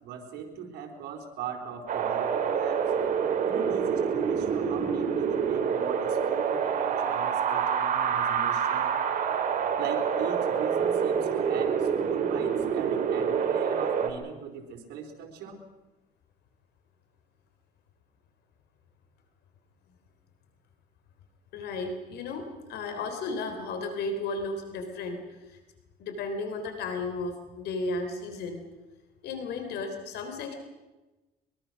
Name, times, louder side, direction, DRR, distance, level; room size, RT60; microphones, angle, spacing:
voice 1, 0.0-2.9 3.4-8.9 9.8-15.6, right 6 dB, 80° right, 3 dB, 4.4 m, -39 dB
Wind, 1.9-14.1, right 7 dB, 50° right, 3.1 m, -27 dB
voice 2, 21.5-25.6 26.0-28.6 29.2-30.5, left 3 dB, 75° left, 6 dB, 3.7 m, -34 dB
23.5 x 23.0 x 6.4 m, 1.1 s
cardioid pair, 110°, 17 cm